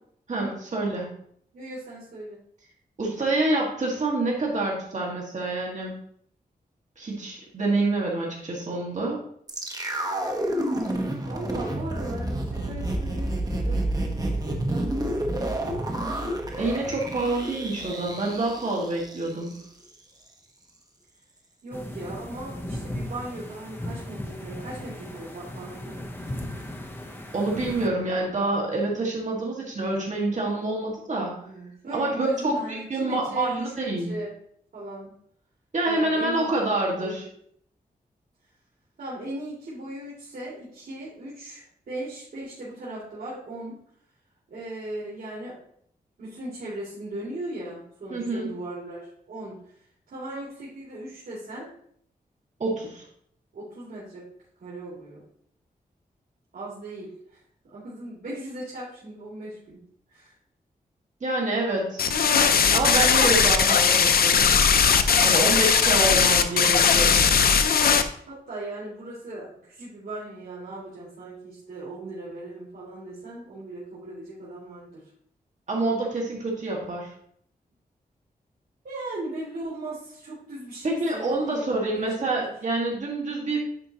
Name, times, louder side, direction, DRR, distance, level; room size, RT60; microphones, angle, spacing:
voice 1, 0.3-1.1 3.0-6.0 7.0-9.2 16.6-19.5 27.3-31.4 31.9-34.1 35.7-37.2 48.1-48.5 52.6-53.0 61.2-62.0 62.7-64.6 65.2-67.3 75.7-77.1 80.8-83.7, right 2 dB, 50° right, -2 dB, 1.8 m, -27 dB
voice 2, 1.5-2.4 11.2-15.7 21.6-26.0 31.4-34.3 34.7-35.1 35.8-37.3 39.0-43.8 44.5-45.5 46.2-49.6 50.1-51.7 53.5-54.3 54.6-55.2 56.5-59.8 60.1-60.3 65.2-66.6 68.3-75.0 78.8-82.4, right 1 dB, 80° right, -8 dB, 2.4 m, -38 dB
sound 1, 9.5-19.6 19.9-20.0, right 1 dB, 25° right, 1.1 m, -29 dB
sound 2, 21.7-27.9, left 1 dB, 15° left, 0.8 m, -37 dB
sound 3, 62.0-68.0, left 6 dB, 80° left, 0.5 m, -19 dB
9.7 x 4.5 x 2.9 m, 0.65 s
wide cardioid pair, 120°, 15 cm